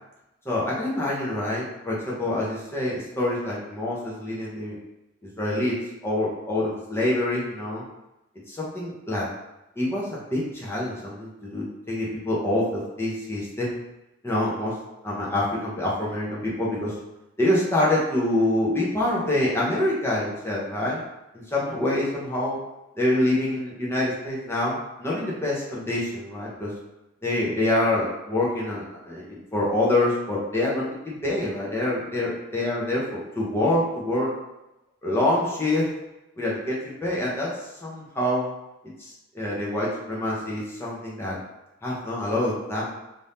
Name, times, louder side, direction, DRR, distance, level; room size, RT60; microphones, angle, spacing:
voice 1, 0.4-4.8 5.4-5.8 6.0-7.8 8.5-9.3 9.8-13.8 14.2-14.7 15.0-16.9 17.4-21.0 21.3-22.6 23.0-26.7 27.2-34.3 35.0-35.9 36.4-37.5 37.8-38.5 39.0-41.4 41.8-42.9, left 1 dB, 10° left, -6 dB, 0.8 m, -26 dB
2.7 x 2.6 x 3.4 m, 0.96 s
head